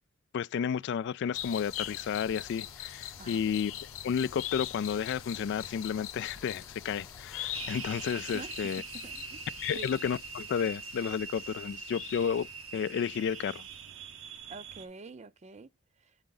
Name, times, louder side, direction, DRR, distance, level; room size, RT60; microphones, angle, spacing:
voice 1, 0.3-3.7 4.0-8.8 9.6-12.5 12.7-13.6, left 7 dB, 60° left, 0.3 m, -32 dB
sound 1, 1.2-8.2, left 3 dB, 15° left, 0.6 m, -58 dB
sound 2, 1.3-13.0 13.3-13.4, left 12 dB, 80° left, 0.7 m, -42 dB
sound 3, 7.5-14.9, right 6 dB, 85° right, 1.1 m, -43 dB
voice 2, 8.3-9.4 9.7-9.9 14.5-16.2, right 4 dB, 35° right, 0.5 m, -47 dB
8.1 x 3.8 x 3.8 m
head